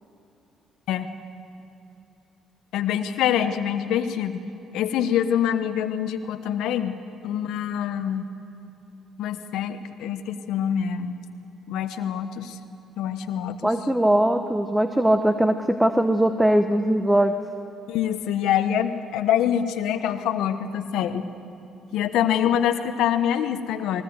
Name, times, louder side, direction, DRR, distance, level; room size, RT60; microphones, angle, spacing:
voice 1, 2.7-4.4 4.7-8.3 9.2-11.1 11.7-12.6 13.0-13.7 17.9-21.3 21.9-24.0, left 9 dB, 75° left, 9 dB, 1.2 m, -25 dB
voice 2, 13.6-17.4, right 1 dB, 5° right, 8 dB, 1.1 m, -20 dB
20.5 x 19.5 x 7.9 m, 2.9 s
supercardioid pair, 65°, 0 cm